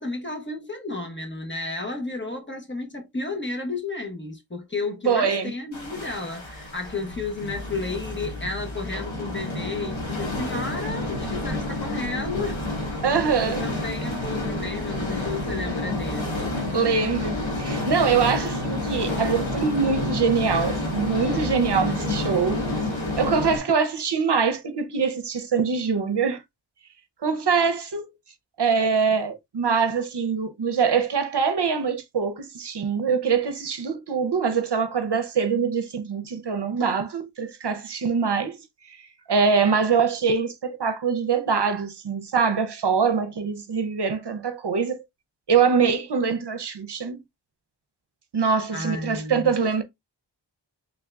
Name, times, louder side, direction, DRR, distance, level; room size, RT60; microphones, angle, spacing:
voice 1, 0.0-12.6 13.1-16.5 48.4-49.5, left 3 dB, 25° left, 1.0 m, -32 dB
voice 2, 5.0-5.5 13.0-13.6 16.7-22.6 23.2-26.4 27.2-28.1 28.6-39.0 39.3-45.0 45.5-47.2 48.3-49.8, right 5 dB, 60° right, 0.7 m, -24 dB
sound 1, 5.7-23.6, left 2 dB, 85° left, 1.4 m, -29 dB
3.6 x 3.4 x 2.3 m
wide cardioid pair, 65°, 45 cm